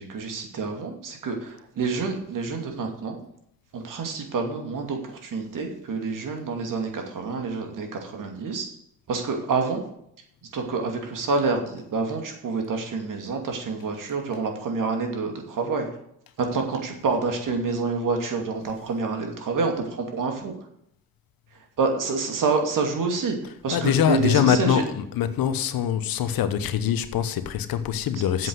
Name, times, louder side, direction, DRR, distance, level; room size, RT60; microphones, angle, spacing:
voice 1, 0.0-3.2 3.7-8.7 9.1-9.8 10.5-15.9 16.4-20.5 21.8-23.4 23.6-24.8 28.4-28.5, right 4 dB, 60° right, 2.6 m, -27 dB
voice 2, 23.7-28.5, left 9 dB, 70° left, 1.1 m, -23 dB
7.9 x 7.5 x 7.9 m
cardioid pair, 85°, 36 cm